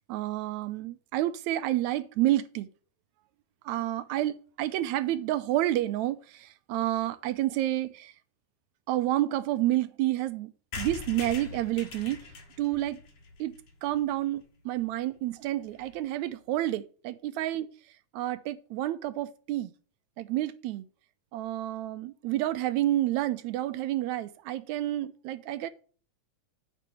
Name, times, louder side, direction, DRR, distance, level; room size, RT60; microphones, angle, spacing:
voice 1, 0.1-2.7 3.7-6.2 6.7-8.1 8.9-10.5 10.8-12.2 12.6-13.0 13.4-13.6 13.8-17.7 18.1-19.7 20.2-20.8 21.3-25.7, right 14 dB, 80° right, 1.9 m, -29 dB
sound 1, 10.7-14.4 14.8-14.9 15.1-15.2 15.4-15.5 15.7-16.0, left 4 dB, 60° left, 2.8 m, -42 dB
8.6 x 7.7 x 3.2 m
omnidirectional pair, 3.4 m